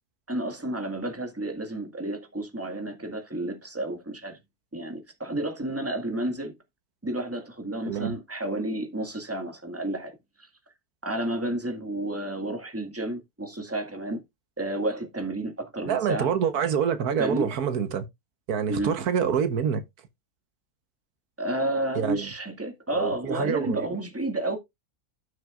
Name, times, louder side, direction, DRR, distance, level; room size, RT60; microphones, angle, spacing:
voice 1, 0.3-4.4 4.7-6.5 7.0-10.1 11.0-14.2 14.6-16.3 17.2-17.5 18.7-18.9 21.4-24.6, right 1 dB, 10° right, 1.8 m, -31 dB
voice 2, 7.8-8.2 15.9-18.1 18.5-19.8 21.9-22.3 23.0-23.9, right 7 dB, 90° right, 1.6 m, -26 dB
12.0 x 6.6 x 2.5 m
omnidirectional pair, 1.6 m